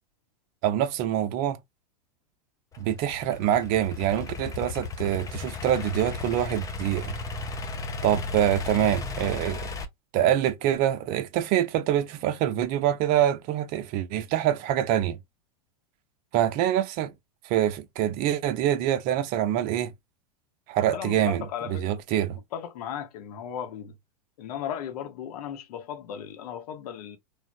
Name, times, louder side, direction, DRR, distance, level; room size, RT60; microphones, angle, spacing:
voice 1, 0.6-1.6 2.8-7.1 8.0-9.7 10.1-15.2 16.3-17.1 17.4-19.9 20.7-22.4, right 11 dB, 45° right, 0.5 m, -25 dB
Idling / Accelerating revving vroom, 2.7-9.9, left 4 dB, 15° left, 0.4 m, -35 dB
voice 2, 20.9-22.0 22.5-24.0 24.4-27.2, left 9 dB, 65° left, 0.7 m, -36 dB
3.2 x 2.0 x 2.4 m
hypercardioid pair, 100°, 21 cm